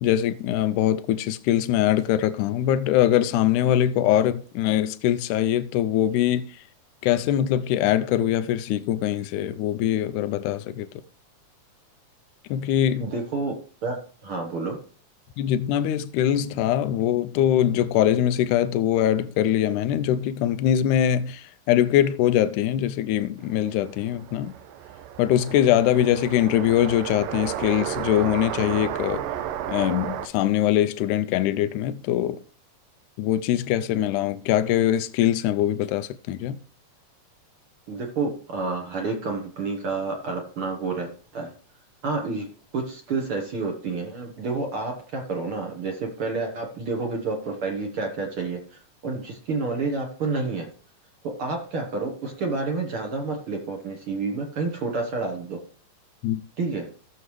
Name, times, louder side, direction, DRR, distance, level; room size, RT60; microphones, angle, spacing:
voice 1, 0.0-6.5 7.0-10.9 12.5-13.1 15.4-24.5 25.2-29.2 29.7-32.4 33.2-36.6 56.2-56.4, left 11 dB, 80° left, 1.9 m, -22 dB
voice 2, 12.9-13.5 13.8-14.8 37.9-41.1 41.3-41.5 42.0-42.5 42.7-50.7 51.2-55.6 56.6-56.9, right 3 dB, 55° right, 1.6 m, -29 dB
sound 1, 23.5-30.3, right 10 dB, 85° right, 2.5 m, -33 dB
17.0 x 6.8 x 3.2 m
omnidirectional pair, 4.0 m